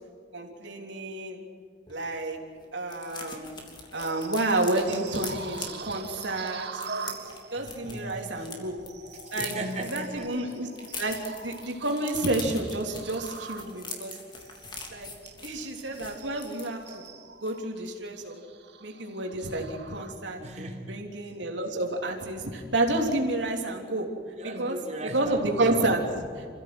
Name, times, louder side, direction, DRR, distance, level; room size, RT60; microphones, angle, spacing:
voice 1, 0.3-1.4 1.9-2.4 2.7-3.5 3.9-7.2 7.5-8.8 9.3-9.6 9.9-10.7 11.0-14.2 14.9-15.1 15.4-17.0 17.4-18.4 18.8-20.4 20.9-24.1 24.4-24.8 25.1-26.5, right 2 dB, 85° right, 2 dB, 3.5 m, -30 dB
sound 1, 1.9-2.0 2.2-2.3 2.6-8.6 8.8-17.1 17.4-17.6 17.9-18.1, left 4 dB, 25° left, 3.3 m, -42 dB
sound 2, 3.9-20.6 21.1-21.3 21.8-22.0, right 4 dB, 65° right, 2.0 m, -44 dB
voice 2, 7.6-8.6 9.3-10.3 14.9-15.2 20.4-21.1 24.4-25.9, right 1 dB, 40° right, 1 dB, 3.5 m, -38 dB
27.5 x 16.0 x 7.9 m, 2.1 s
head